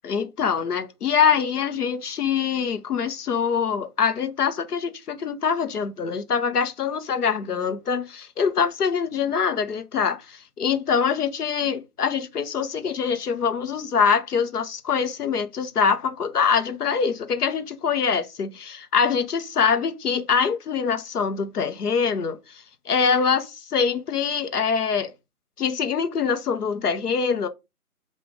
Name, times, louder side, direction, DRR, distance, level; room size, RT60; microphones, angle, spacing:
voice 1, 0.0-25.1 25.6-27.5, left 6 dB, 80° left, 0.8 m, -24 dB
3.9 x 2.5 x 4.6 m
figure-of-eight pair, 155°, 46 cm